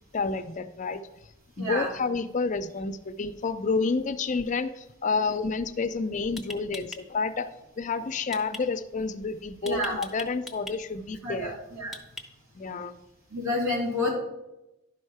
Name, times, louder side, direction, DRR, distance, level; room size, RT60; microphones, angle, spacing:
voice 1, 0.1-1.0 1.6-7.5 7.8-11.6 12.6-12.9, left 4 dB, 35° left, 10 dB, 0.4 m, -29 dB
voice 2, 1.6-1.9 9.6-10.0 11.2-12.0 13.3-14.1, left 2 dB, 85° right, -3 dB, 3.0 m, -29 dB
sound 1, 6.4-7.0 8.3-8.6 9.7-10.8 11.9-12.5, left 2 dB, ahead, 0.7 m, -40 dB
11.0 x 5.4 x 4.8 m, 0.94 s
head